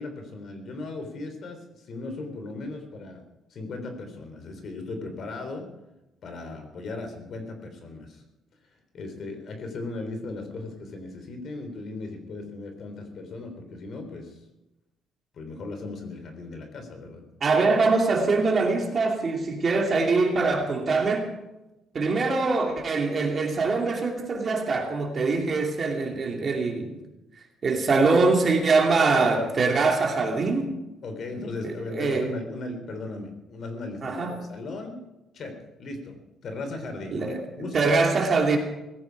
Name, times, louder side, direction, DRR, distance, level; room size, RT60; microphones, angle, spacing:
voice 1, 0.0-3.2 3.5-5.7 6.2-8.2 8.9-14.4 15.3-17.2 31.0-35.0 35.3-38.0, left 2 dB, 45° left, 6 dB, 3.7 m, -37 dB
voice 2, 17.4-21.3 21.9-27.0 27.6-30.7 31.6-32.3 34.0-34.4 37.1-37.4 37.7-38.6, right 3 dB, 30° right, 2 dB, 2.7 m, -23 dB
18.5 x 16.0 x 4.8 m, 0.96 s
cardioid pair, 175°, 0 cm